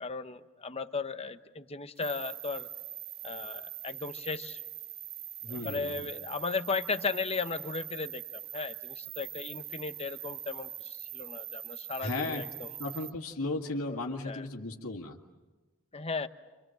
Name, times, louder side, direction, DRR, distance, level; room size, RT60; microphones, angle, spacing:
voice 1, 0.0-2.7 3.2-4.6 5.5-8.2 8.5-12.7 13.9-14.0 14.2-14.4 15.9-16.3, left 4 dB, 25° left, 10 dB, 0.9 m, -36 dB
sound 1, 2.0-13.1, right 13 dB, 45° right, 0.9 m, -43 dB
voice 2, 5.4-6.1 12.0-12.4 12.8-15.2, left 2 dB, 75° left, 1 dB, 2.0 m, -35 dB
29.5 x 25.5 x 7.7 m, 1.2 s
head